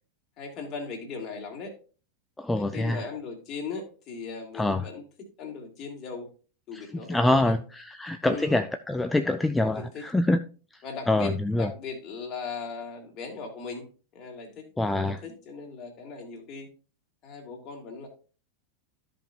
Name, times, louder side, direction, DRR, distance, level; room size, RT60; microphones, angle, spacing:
voice 1, 0.4-1.7 2.5-5.0 5.4-6.3 6.7-7.5 8.2-8.6 9.7-10.0 10.8-13.8 14.1-16.7 17.2-18.1, left 5 dB, 40° left, 2.8 m, -38 dB
voice 2, 2.4-3.1 4.5-4.9 6.7-10.4 10.7-11.7 14.8-15.2, left 2 dB, 5° left, 0.4 m, -26 dB
14.0 x 5.2 x 2.7 m
figure-of-eight pair, 90°, 0 cm